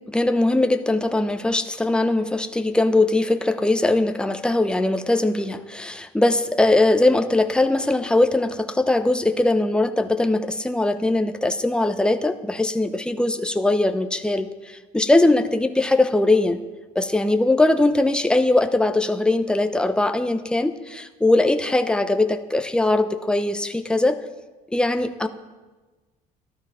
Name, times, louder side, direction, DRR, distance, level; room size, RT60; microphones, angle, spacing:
voice 1, 0.1-16.6 16.9-24.2 24.7-25.3, left 2 dB, 5° left, 8 dB, 0.8 m, -21 dB
13.0 x 12.0 x 5.0 m, 1.3 s
cardioid pair, 105°, 15 cm